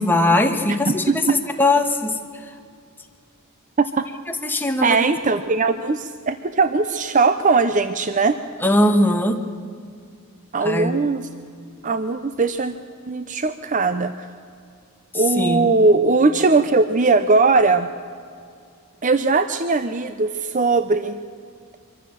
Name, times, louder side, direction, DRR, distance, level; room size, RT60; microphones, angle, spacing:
voice 1, 0.0-2.2 4.4-5.0 8.6-9.4 10.6-11.0 15.4-15.7, left 1 dB, 10° left, 4 dB, 1.3 m, -20 dB
voice 2, 0.7-1.3 3.8-4.1 4.8-8.4 10.5-11.3 11.8-12.7 13.1-14.3 15.1-17.9 19.0-21.2, right 3 dB, 35° right, 11 dB, 0.6 m, -19 dB
24.0 x 14.5 x 7.6 m, 2.3 s
head